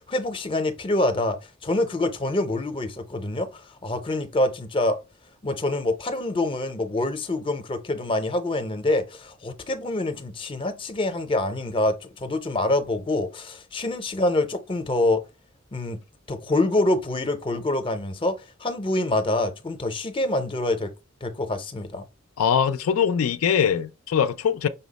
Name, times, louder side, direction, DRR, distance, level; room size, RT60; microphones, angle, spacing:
voice 1, 0.1-5.0 5.4-15.2 15.7-16.0 16.3-20.9 21.2-22.0, left 2 dB, 25° left, 0.6 m, -26 dB
voice 2, 22.4-24.7, left 7 dB, 85° left, 0.4 m, -22 dB
5.5 x 2.0 x 3.9 m
head